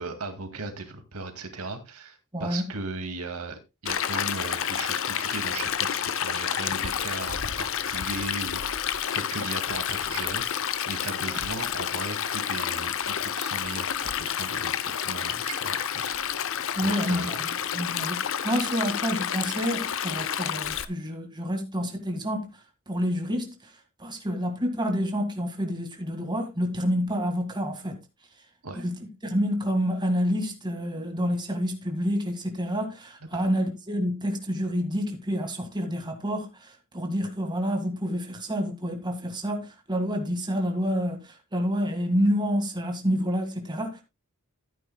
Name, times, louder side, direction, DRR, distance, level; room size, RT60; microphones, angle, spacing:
voice 1, 0.0-14.8 15.0-17.4 28.6-28.8 33.3-33.5, right 3 dB, 85° right, 2.1 m, -37 dB
voice 2, 2.3-2.7 16.7-22.5 22.9-23.6 24.0-28.0 28.7-44.0, equal, 20° right, 1.8 m, -28 dB
Stream, 3.9-20.9, left 9 dB, 60° left, 0.7 m, -29 dB
14.5 x 9.1 x 2.2 m
head